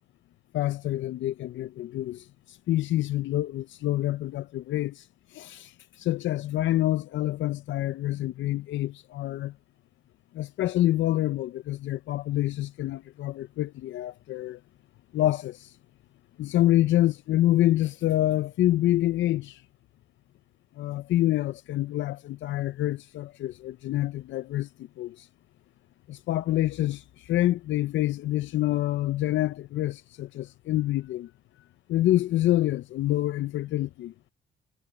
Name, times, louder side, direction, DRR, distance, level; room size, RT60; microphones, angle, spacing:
voice 1, 0.5-5.1 5.3-9.5 10.3-14.6 15.1-15.7 16.4-19.6 20.8-24.7 25.0-25.3 26.1-31.3 31.9-34.1, left 14 dB, 75° left, 0.5 m, -27 dB
cardioid pair, 90°, 20 cm